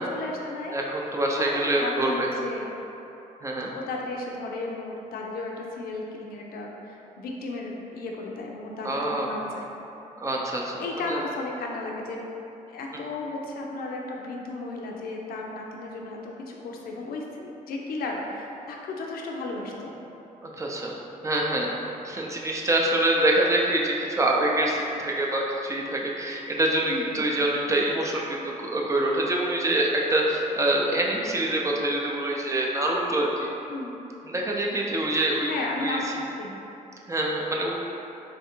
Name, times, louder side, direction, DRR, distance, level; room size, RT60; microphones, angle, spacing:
voice 1, 0.0-0.8 1.4-2.7 3.7-9.6 10.8-12.3 12.7-20.0 26.9-27.2 33.7-34.0 35.4-36.5, left 2 dB, 80° left, -1 dB, 0.5 m, -34 dB
voice 2, 0.7-2.3 3.4-3.7 8.8-9.3 10.2-11.2 20.4-21.0 21.2-21.7 22.0-33.5 34.3-35.5 35.8-36.0 37.1-37.7, right 1 dB, 20° right, -2 dB, 0.5 m, -25 dB
3.3 x 2.5 x 4.3 m, 3.0 s
cardioid pair, 110°, 15 cm